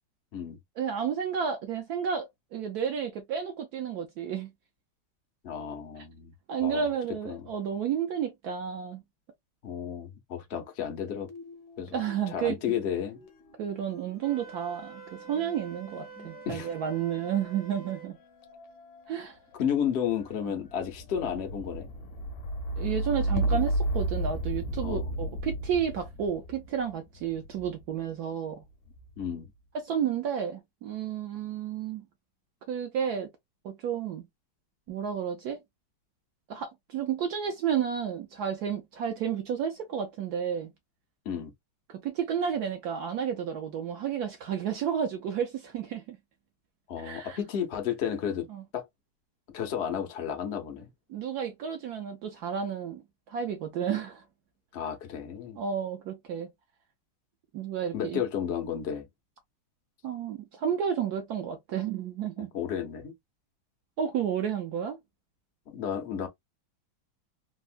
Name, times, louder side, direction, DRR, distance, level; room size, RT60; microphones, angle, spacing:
voice 1, 0.8-4.5 6.0-6.1 6.5-9.0 11.9-12.6 13.6-18.2 19.1-19.4 20.4-20.6 22.8-28.6 29.7-32.0 32.7-33.3 33.6-34.2 34.9-35.6 36.5-40.7 41.9-46.2 47.0-47.4 48.5-48.6 51.1-54.2 55.6-56.5 57.5-58.2 60.0-62.5 64.0-65.0, right 8 dB, 80° right, 0.8 m, -31 dB
voice 2, 5.4-6.3 6.6-6.9 7.2-7.4 9.6-11.3 11.8-12.0 12.3-13.2 16.5-16.7 19.6-21.9 24.8-25.1 29.2-29.5 41.2-41.5 46.9-48.4 48.7-48.9 49.5-50.9 54.7-55.6 57.9-59.1 62.5-63.1 65.7-66.3, left 8 dB, 80° left, 0.5 m, -32 dB
sound 1, 11.2-12.6 12.9-27.9 28.7-29.2, right 1 dB, 65° left, 1.0 m, -35 dB
Wind instrument woodwind instrument, 14.2-18.1, right 5 dB, 60° right, 0.3 m, -47 dB
3.5 x 2.1 x 2.3 m
omnidirectional pair, 2.3 m